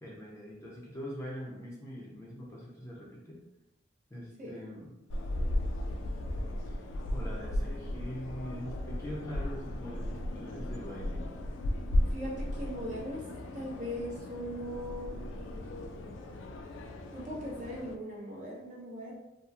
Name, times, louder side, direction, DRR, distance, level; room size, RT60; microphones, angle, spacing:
voice 1, 0.0-3.4 4.1-4.9 6.7-6.8 7.1-11.2, equal, 15° left, -4 dB, 0.5 m, -43 dB
sound 1, 5.1-18.0, left 1 dB, 90° left, 0.3 m, -35 dB
voice 2, 12.1-13.2 13.5-15.3 17.1-19.1, equal, 40° right, -4 dB, 0.7 m, -39 dB
2.8 x 2.4 x 2.3 m, 0.95 s
head